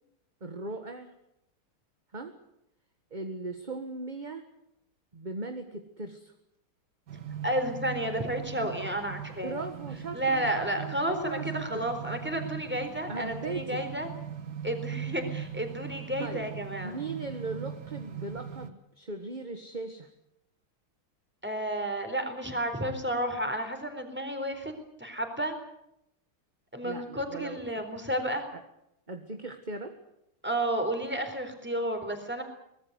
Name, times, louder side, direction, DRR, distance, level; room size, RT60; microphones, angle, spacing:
voice 1, 0.4-1.1 2.1-2.4 3.1-4.4 5.1-6.3 9.4-11.6 13.1-13.9 16.2-16.5 16.8-20.1 26.8-27.6 29.1-29.9, right 3 dB, 25° right, 6 dB, 1.6 m, -38 dB
sound 1, 7.1-18.7, right 9 dB, 50° right, 1.8 m, -40 dB
voice 2, 7.4-9.6 10.1-14.1 14.6-17.0 21.4-24.7 25.0-25.6 26.7-28.5 30.4-32.4, right 1 dB, 5° right, 6 dB, 3.8 m, -31 dB
23.5 x 19.5 x 8.2 m, 0.82 s
omnidirectional pair, 2.3 m